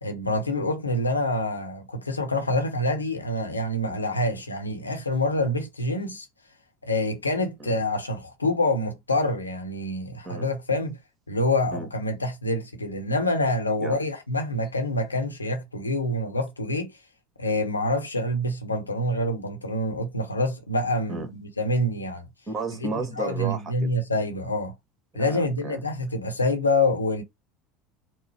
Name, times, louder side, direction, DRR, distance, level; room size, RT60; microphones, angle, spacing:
voice 1, 0.0-6.3 6.8-11.0 11.3-16.9 17.4-22.2 22.8-22.9 23.2-24.7 25.1-27.2, left 1 dB, 90° left, 0.9 m, -26 dB
voice 2, 22.5-23.9 25.1-25.8, right 3 dB, 30° right, 1.7 m, -33 dB
4.5 x 2.1 x 4.5 m
figure-of-eight pair, 70°, 0 cm